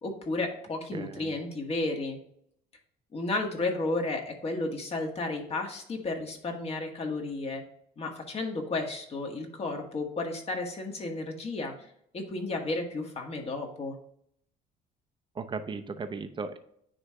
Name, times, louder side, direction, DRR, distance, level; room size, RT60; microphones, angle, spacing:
voice 1, 0.0-2.2 3.1-7.6 8.0-14.0, left 2 dB, 35° left, 2 dB, 1.7 m, -33 dB
voice 2, 0.9-1.3 15.4-16.6, right 4 dB, 30° right, 8 dB, 0.7 m, -36 dB
9.7 x 3.3 x 3.6 m, 0.69 s
cardioid pair, 110°, 17 cm